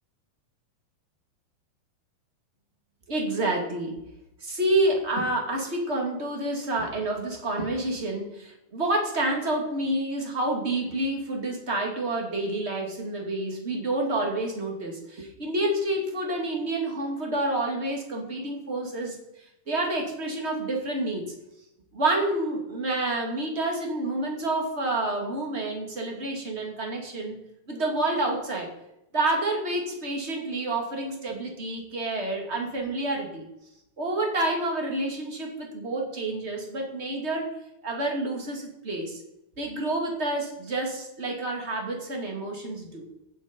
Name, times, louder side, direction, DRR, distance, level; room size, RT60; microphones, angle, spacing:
voice 1, 3.1-4.0 4.4-19.2 19.7-21.3 21.9-27.4 27.7-28.7 29.1-33.4 34.0-37.6 37.8-39.2 39.6-43.1, right 2 dB, 25° right, 1 dB, 1.8 m, -28 dB
16.0 x 7.7 x 5.2 m, 0.87 s
omnidirectional pair, 4.3 m